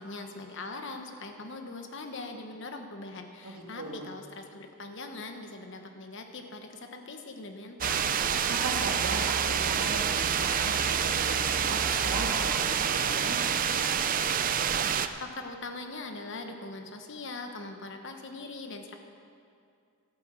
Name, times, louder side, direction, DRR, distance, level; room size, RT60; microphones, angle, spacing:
voice 1, 0.0-8.1 15.2-19.0, left 3 dB, 55° left, 5 dB, 1.1 m, -41 dB
voice 2, 3.4-4.1 8.5-13.8, right 2 dB, 80° right, 0 dB, 2.0 m, -38 dB
sound 1, 7.8-15.1, right 8 dB, 40° right, 0.4 m, -27 dB
12.0 x 9.1 x 7.6 m, 2.4 s
head